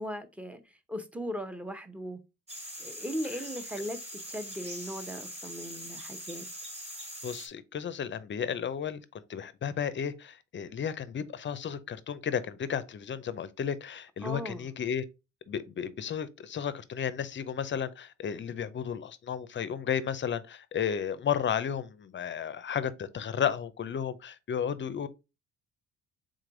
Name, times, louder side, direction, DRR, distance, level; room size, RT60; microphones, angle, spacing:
voice 1, 0.0-2.2 2.8-4.0 4.3-6.5 14.2-14.7, equal, 5° right, 0.7 m, -38 dB
sound 1, 2.5-7.5, equal, 20° right, 1.4 m, -42 dB
voice 2, 7.2-15.0 15.5-25.1, left 8 dB, 40° left, 0.5 m, -33 dB
3.8 x 3.2 x 3.8 m
cardioid pair, 90°, 30 cm